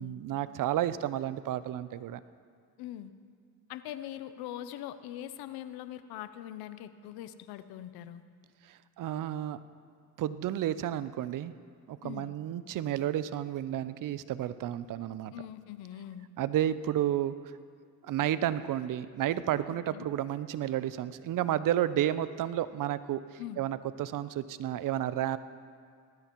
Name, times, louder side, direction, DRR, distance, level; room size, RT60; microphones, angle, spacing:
voice 1, 0.0-2.2 8.7-9.6 10.2-11.5 11.9-15.3 16.4-17.4 18.0-25.4, right 12 dB, 60° right, 15 dB, 0.6 m, -31 dB
voice 2, 2.8-3.1 3.7-8.2 12.0-12.3 15.3-16.3 19.9-20.1 23.4-23.6, left 12 dB, 80° left, 12 dB, 0.7 m, -42 dB
19.0 x 14.0 x 3.0 m, 2.1 s
supercardioid pair, 75°, 37 cm